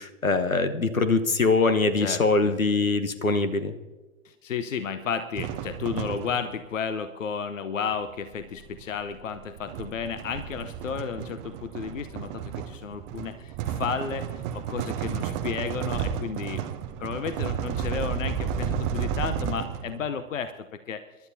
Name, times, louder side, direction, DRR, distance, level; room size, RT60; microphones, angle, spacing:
voice 1, 0.0-3.7, left 3 dB, 85° left, 12 dB, 1.2 m, -23 dB
voice 2, 2.0-2.6 4.2-16.6 17.0-21.3, left 6 dB, 70° left, 12 dB, 0.8 m, -33 dB
sound 1, 5.4-6.7 7.9-20.1, right 8 dB, 15° right, 0.3 m, -32 dB
27.5 x 12.0 x 2.7 m, 1.2 s
figure-of-eight pair, 105°, 40 cm